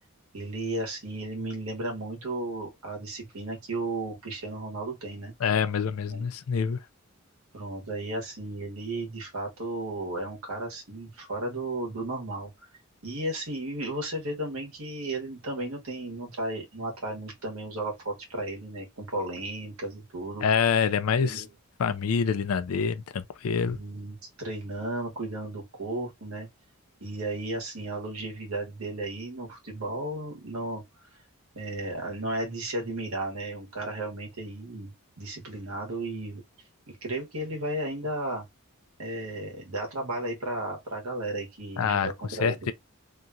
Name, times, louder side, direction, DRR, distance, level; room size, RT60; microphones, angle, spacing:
voice 1, 0.3-5.3 6.1-6.3 7.5-12.5 13.0-20.5 21.2-21.5 23.6-26.5 27.0-30.8 31.5-34.9 35.2-36.4 36.9-38.4 39.0-42.7, right 2 dB, 80° right, 1.3 m, -34 dB
voice 2, 5.4-6.8 20.4-21.4 21.8-23.8 41.8-42.7, left 6 dB, 85° left, 0.4 m, -26 dB
2.9 x 2.4 x 2.5 m
head